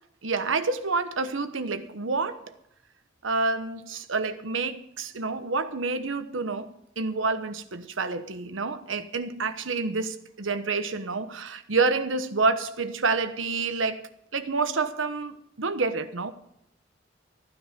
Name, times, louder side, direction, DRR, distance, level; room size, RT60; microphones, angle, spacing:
voice 1, 0.2-2.5 3.2-14.0 14.3-16.3, right 4 dB, 85° right, 10 dB, 1.1 m, -28 dB
14.5 x 10.0 x 5.9 m, 0.76 s
head